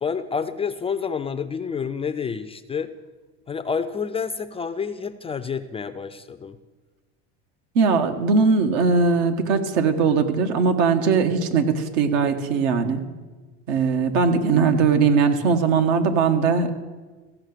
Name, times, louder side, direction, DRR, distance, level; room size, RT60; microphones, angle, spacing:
voice 1, 0.0-2.9 3.5-6.6, left 6 dB, 20° left, 12 dB, 0.4 m, -29 dB
voice 2, 7.7-13.0 13.7-16.7, right 5 dB, 70° right, 7 dB, 1.4 m, -20 dB
15.5 x 6.0 x 6.6 m, 1.3 s
supercardioid pair, 100°, 33 cm